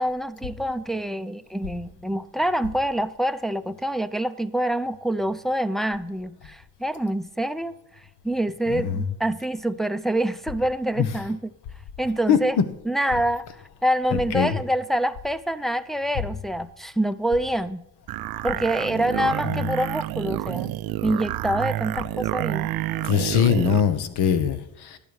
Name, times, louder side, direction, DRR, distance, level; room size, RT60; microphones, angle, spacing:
voice 1, 0.0-7.8 8.2-11.4 12.0-12.6 12.8-13.5 13.8-17.8 18.4-20.7 21.0-22.7, right 1 dB, ahead, 10 dB, 0.5 m, -26 dB
voice 2, 8.7-9.0 12.3-12.4 14.3-14.6 22.9-25.0, left 8 dB, 65° left, 11 dB, 1.3 m, -22 dB
sound 1, 18.1-23.9, right 15 dB, 60° right, 0.5 m, -29 dB
12.0 x 8.9 x 4.8 m, 0.82 s
supercardioid pair, 60°, 42 cm